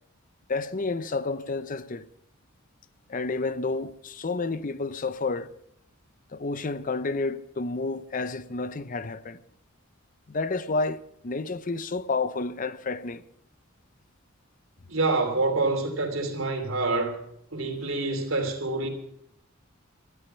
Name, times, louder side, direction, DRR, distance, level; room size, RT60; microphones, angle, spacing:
voice 1, 0.5-2.0 3.1-5.5 6.3-9.4 10.3-13.2, left 3 dB, 40° left, 0.7 m, -30 dB
voice 2, 14.9-17.2 17.5-18.9, right 3 dB, 80° right, 3.2 m, -27 dB
17.5 x 13.0 x 5.6 m
head